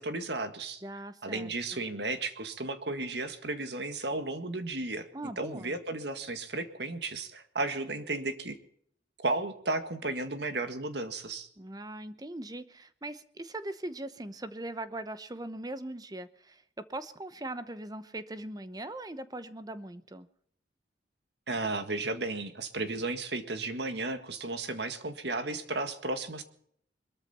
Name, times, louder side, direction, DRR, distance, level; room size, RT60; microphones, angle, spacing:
voice 1, 0.0-0.8 1.2-5.1 5.4-8.6 9.2-11.5 21.5-26.4, right 2 dB, 65° right, 8 dB, 1.8 m, -34 dB
voice 2, 0.8-1.8 5.1-5.7 11.6-20.3, right 1 dB, 20° right, 12 dB, 0.9 m, -40 dB
22.5 x 13.5 x 4.3 m, 0.64 s
head